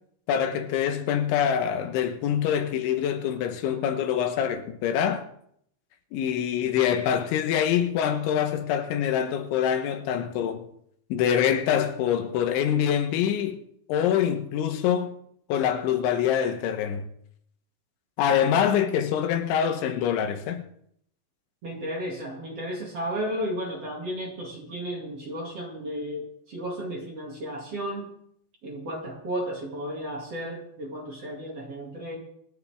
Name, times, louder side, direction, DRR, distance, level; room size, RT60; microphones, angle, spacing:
voice 1, 0.3-5.3 6.1-10.7 11.1-13.6 13.9-15.1 15.5-17.1 18.2-20.7, left 9 dB, 80° left, 3.4 m, -25 dB
voice 2, 21.6-28.1 28.6-32.2, equal, 40° right, 2.6 m, -33 dB
27.5 x 10.5 x 3.6 m
omnidirectional pair, 5.5 m